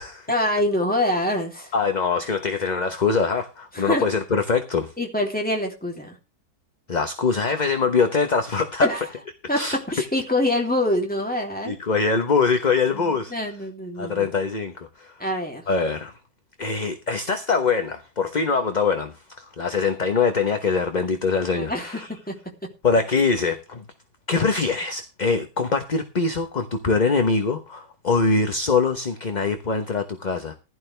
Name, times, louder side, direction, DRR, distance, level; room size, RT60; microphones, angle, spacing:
voice 1, 0.3-1.7 3.7-4.0 5.0-6.2 8.8-9.1 9.5-11.8 12.9-14.3 15.2-15.6 21.5-22.4, left 1 dB, 5° left, 3.0 m, -25 dB
voice 2, 1.7-4.9 6.9-8.9 9.5-9.8 11.6-13.3 14.0-15.1 15.7-16.1 16.6-22.1 22.8-23.8 24.3-30.5, left 4 dB, 30° left, 1.1 m, -23 dB
15.5 x 11.5 x 3.4 m
omnidirectional pair, 1.6 m